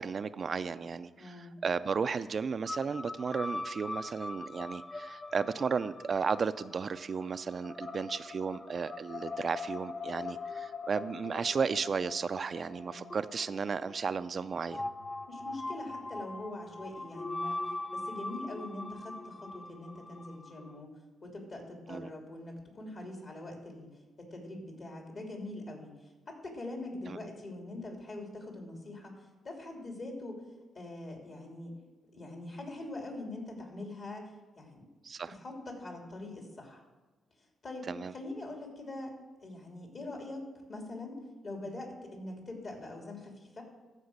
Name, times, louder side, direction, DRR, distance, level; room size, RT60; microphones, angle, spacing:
voice 1, 0.0-14.8 21.9-22.1 27.1-27.2 35.0-35.3 37.9-38.1, right 5 dB, 50° right, 12 dB, 0.4 m, -34 dB
voice 2, 1.2-1.6 12.9-13.2 15.3-17.6 17.9-20.9 21.2-23.9 24.2-25.9 26.3-29.2 29.4-30.4 30.7-31.7 32.1-34.3 34.6-34.9 35.4-36.8 37.6-37.9 38.1-39.1 39.4-40.4 40.7-43.6, left 2 dB, 55° left, 1 dB, 3.1 m, -43 dB
sound 1, 2.7-20.8, left 2 dB, 30° left, 0.6 m, -42 dB
13.5 x 4.9 x 6.6 m, 1.2 s
supercardioid pair, 60°, 0 cm